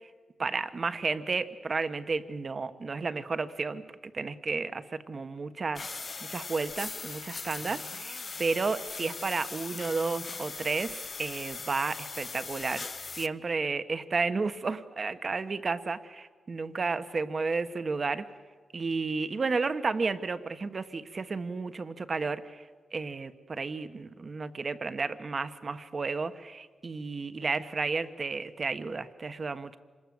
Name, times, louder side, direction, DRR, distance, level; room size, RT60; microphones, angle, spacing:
voice 1, 0.4-3.8 4.1-5.9 6.3-18.2 18.7-22.6 22.9-29.8, right 4 dB, 45° right, 11 dB, 1.4 m, -32 dB
sound 1, 5.7-13.3, left 4 dB, 50° left, 0.9 m, -40 dB
26.5 x 21.0 x 7.9 m, 1.5 s
cardioid pair, 65°, 0 cm